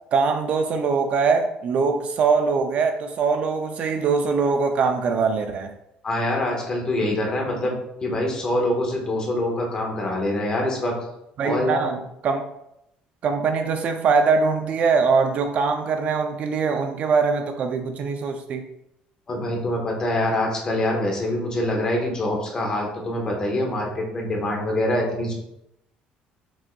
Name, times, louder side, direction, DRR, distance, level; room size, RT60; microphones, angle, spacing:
voice 1, 0.1-5.7 11.4-12.4 13.2-18.7, right 5 dB, 45° right, 6 dB, 0.4 m, -22 dB
voice 2, 6.0-10.9 11.4-11.9 19.3-25.3, left 1 dB, 25° left, 0 dB, 1.1 m, -25 dB
6.1 x 3.8 x 2.2 m, 0.82 s
cardioid pair, 160°, 3 cm